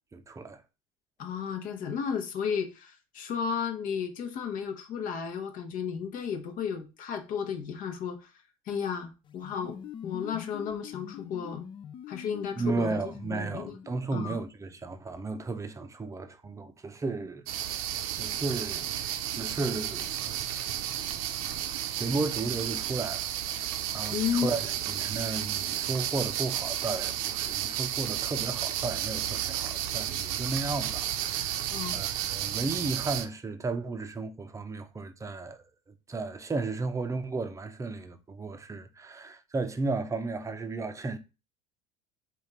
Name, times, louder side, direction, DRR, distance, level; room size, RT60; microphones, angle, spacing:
voice 1, 0.1-0.6 12.6-17.4 18.1-18.9 19.3-21.4 21.7-41.2, right 3 dB, 15° right, 0.6 m, -34 dB
voice 2, 1.2-8.3 8.7-11.7 12.1-13.0 13.3-13.7 14.1-14.4 24.1-24.5 31.7-32.0, left 7 dB, 50° left, 1.0 m, -33 dB
sound 1, 9.3-14.2, left 9 dB, 30° left, 0.3 m, -44 dB
sound 2, 17.5-33.2, right 11 dB, 70° right, 0.6 m, -32 dB
3.5 x 2.5 x 4.3 m
hypercardioid pair, 85°, 18 cm